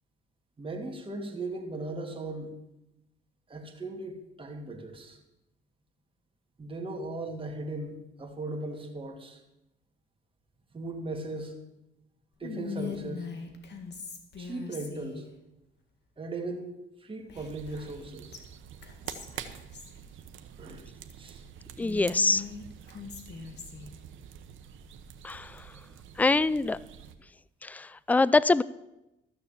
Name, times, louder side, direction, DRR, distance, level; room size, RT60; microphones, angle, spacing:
voice 1, 0.6-2.6 3.5-5.2 6.6-9.4 10.7-11.6 12.4-13.3 14.4-15.3 16.2-16.7 17.0-18.4 20.6-20.8 21.2-21.4, right 2 dB, 25° right, 2 dB, 2.2 m, -38 dB
Whispering, 12.4-15.3 17.3-18.0 18.3-18.4 18.8-20.0 21.8-23.9, left 6 dB, 60° left, 2.0 m, -41 dB
sound 1, 17.3-27.1, right 9 dB, 80° right, 1.0 m, -47 dB
voice 2, 21.8-22.4 25.2-25.4 26.2-26.8 27.7-28.6, left 3 dB, 10° left, 19 dB, 0.3 m, -24 dB
13.5 x 6.8 x 7.2 m, 0.92 s
cardioid pair, 90°, 20 cm